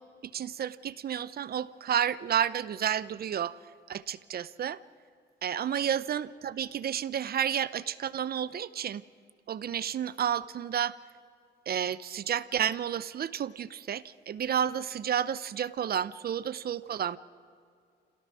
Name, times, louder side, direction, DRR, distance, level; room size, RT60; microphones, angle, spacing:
voice 1, 0.3-3.5 3.9-4.8 5.4-9.0 9.5-11.0 11.7-17.2, right 9 dB, 55° right, 16 dB, 0.7 m, -31 dB
27.0 x 17.0 x 6.2 m, 2.3 s
cardioid pair, 105°, 19 cm